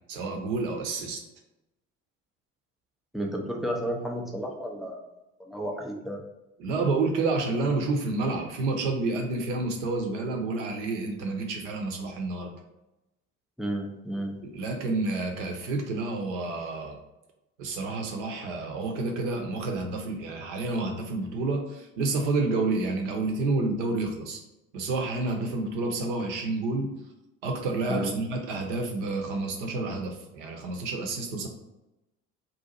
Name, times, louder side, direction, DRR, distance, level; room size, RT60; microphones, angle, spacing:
voice 1, 0.1-1.2 6.6-12.5 14.4-17.0 17.6-24.4 24.7-26.9 27.4-31.5, right 3 dB, 60° right, 3 dB, 0.7 m, -29 dB
voice 2, 3.1-5.0 5.5-6.2 13.6-14.3 27.9-28.2, equal, ahead, 0 dB, 0.3 m, -32 dB
2.7 x 2.5 x 3.9 m, 0.96 s
figure-of-eight pair, 55°, 39 cm